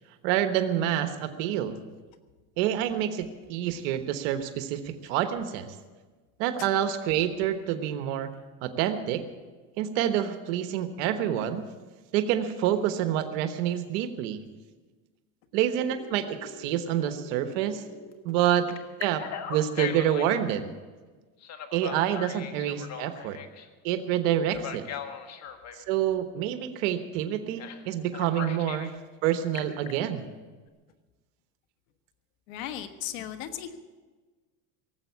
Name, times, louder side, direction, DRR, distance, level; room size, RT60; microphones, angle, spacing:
voice 1, 0.2-1.8 2.6-5.7 6.4-8.3 8.6-9.2 9.8-11.7 12.1-14.4 15.5-17.8 18.2-20.7 21.7-23.4 23.8-24.8 25.7-28.9 29.2-30.3, right 10 dB, 75° right, 8 dB, 1.2 m, -27 dB
Telephone, 15.9-18.1 18.7-20.4 21.4-23.7 24.5-25.8 27.6-27.8 28.1-28.9 29.3-29.9, left 8 dB, 45° left, 1.5 m, -39 dB
voice 2, 32.5-33.8, left 11 dB, 85° left, 8 dB, 1.4 m, -36 dB
18.5 x 8.1 x 8.3 m, 1.3 s
supercardioid pair, 130°, 38 cm